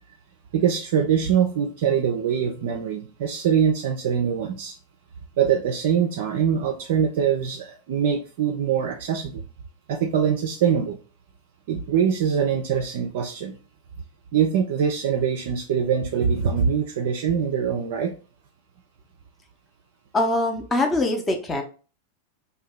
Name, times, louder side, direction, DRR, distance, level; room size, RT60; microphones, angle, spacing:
voice 1, 0.5-4.8 5.4-9.4 9.9-11.0 11.7-13.5 14.3-18.1, right 7 dB, 55° right, 3 dB, 0.3 m, -23 dB
voice 2, 20.1-21.6, left 2 dB, 15° left, 3 dB, 0.6 m, -23 dB
2.6 x 2.2 x 3.2 m, 0.36 s
figure-of-eight pair, 90°, 0 cm